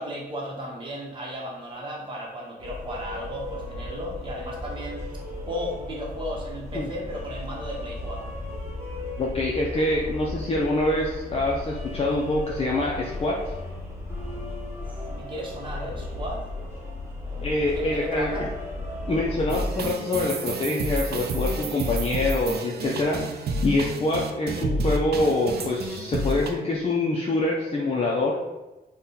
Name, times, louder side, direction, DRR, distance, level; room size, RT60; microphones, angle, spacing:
voice 1, 0.0-5.1 5.4-8.4 14.8-16.4 17.6-18.5 21.7-22.0 22.9-23.3, equal, 30° right, -3 dB, 0.9 m, -35 dB
sound 1, 2.6-19.5, left 2 dB, 15° right, 1.1 m, -35 dB
voice 2, 9.2-13.5 17.4-18.4 19.1-23.2 23.6-28.4, left 2 dB, 35° left, -3 dB, 0.6 m, -25 dB
sound 2, 19.5-26.5, right 2 dB, 70° right, 0.5 m, -29 dB
4.1 x 2.3 x 3.8 m, 1.1 s
wide cardioid pair, 120°, 17 cm